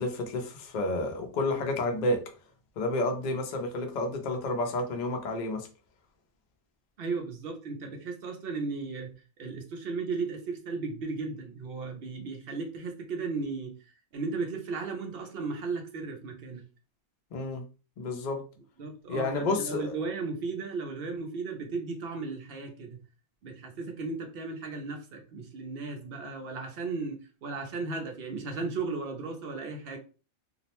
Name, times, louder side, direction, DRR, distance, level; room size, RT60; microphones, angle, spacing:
voice 1, 0.0-2.2 2.8-5.7 17.3-17.6 18.0-18.4 19.1-20.0, left 2 dB, 65° left, 0.4 m, -30 dB
voice 2, 7.0-16.6 18.8-23.0 23.4-30.0, right 4 dB, 65° right, 0.5 m, -35 dB
2.5 x 2.0 x 2.8 m
omnidirectional pair, 1.5 m